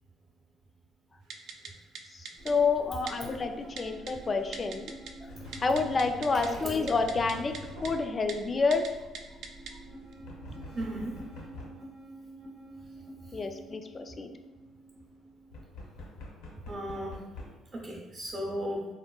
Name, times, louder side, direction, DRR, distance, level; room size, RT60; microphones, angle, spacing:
Typing, 1.3-1.7 2.0-2.5 3.1-3.2 3.8-4.1 4.5-5.1 5.4-6.5 6.9-7.6 7.9-8.0 8.3-8.4 8.7-8.9 9.2-9.7 10.1-10.2, right 5 dB, 70° right, 0.3 m, -40 dB
voice 1, 2.1-4.9 5.6-7.5 7.8-8.9 13.3-14.3, left 4 dB, 35° left, 6 dB, 0.3 m, -29 dB
sound 1, 2.4-15.6, right 1 dB, 85° right, 0.8 m, -48 dB
sound 2, 5.3-8.0 10.2-11.8 15.5-17.5, left 2 dB, 85° left, 0.6 m, -45 dB
voice 2, 10.7-11.1 16.7-17.2 17.7-18.9, right 1 dB, 45° right, -3 dB, 0.6 m, -35 dB
3.6 x 2.1 x 2.3 m, 1.2 s
supercardioid pair, 65°, 0 cm